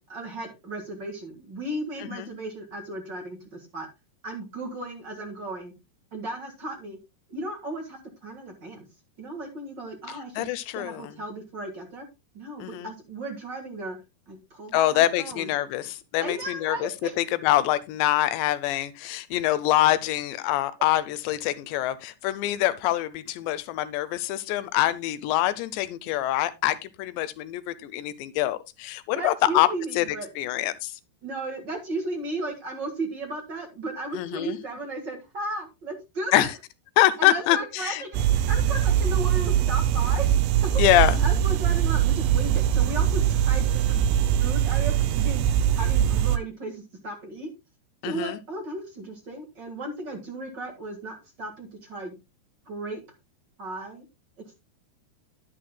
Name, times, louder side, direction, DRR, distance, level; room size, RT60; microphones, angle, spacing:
voice 1, 0.1-3.9 4.2-5.7 6.1-7.0 7.3-8.9 9.2-10.5 10.7-12.0 12.3-14.0 14.3-15.5 16.2-17.1 29.1-30.3 31.2-36.5 37.2-38.2 38.5-40.8 41.2-44.0 44.4-45.4 45.8-47.5 48.0-52.1 52.6-53.0 53.6-54.0, right 2 dB, 55° right, 1.2 m, -35 dB
voice 2, 10.1-11.2 12.6-12.9 14.7-16.9 17.2-29.7 29.9-30.1 30.4-31.0 34.1-34.6 36.3-36.5 37.0-38.0 40.8-41.2 48.0-48.4, left 14 dB, 85° left, 3.0 m, -25 dB
sound 1, 38.1-46.4, right 10 dB, 80° right, 2.8 m, -22 dB
11.0 x 10.0 x 2.2 m
omnidirectional pair, 4.9 m